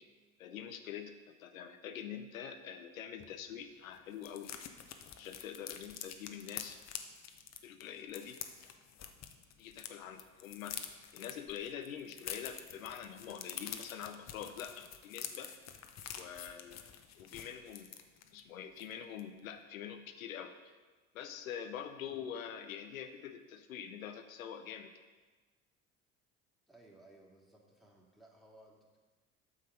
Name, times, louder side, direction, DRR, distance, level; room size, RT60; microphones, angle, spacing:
voice 1, 0.4-4.5 5.2-6.8 7.6-8.4 9.6-10.8 11.1-15.5 16.1-17.9 18.3-20.7 21.1-24.9, left 8 dB, 85° left, 7 dB, 0.7 m, -45 dB
sound 1, 3.2-3.3 3.6-3.7 3.9-9.9 10.2-18.4 18.8-18.9 19.2-19.4, left 9 dB, 40° left, 0.9 m, -47 dB
voice 2, 26.7-29.0, right 1 dB, ahead, -3 dB, 2.4 m, -60 dB
8.6 x 6.6 x 5.1 m, 1.3 s
hypercardioid pair, 65°, 40 cm